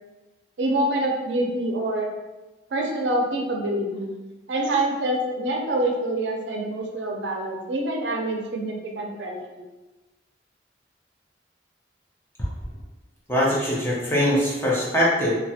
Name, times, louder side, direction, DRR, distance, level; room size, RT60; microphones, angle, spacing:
voice 1, 0.6-2.1 2.7-4.1 4.5-9.6, right 1 dB, 85° right, 1 dB, 0.5 m, -26 dB
voice 2, 13.3-15.4, equal, 15° left, -7 dB, 0.7 m, -22 dB
3.1 x 2.2 x 2.7 m, 1.1 s
head